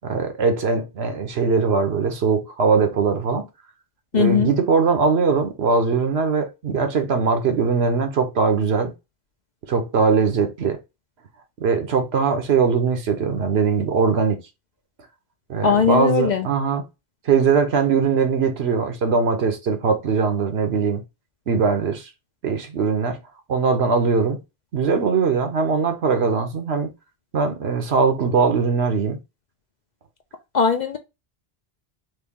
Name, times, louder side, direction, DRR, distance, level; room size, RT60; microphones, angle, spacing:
voice 1, 0.0-3.4 4.1-8.9 9.7-10.8 11.6-14.4 15.5-16.8 17.3-21.0 21.5-22.1 22.4-23.2 23.5-24.4 24.7-26.9 27.3-29.2, right 5 dB, 75° right, 1.1 m, -21 dB
voice 2, 4.1-4.5 15.6-16.5 30.5-31.0, left 6 dB, 55° left, 0.5 m, -19 dB
3.2 x 2.5 x 3.6 m
omnidirectional pair, 1.1 m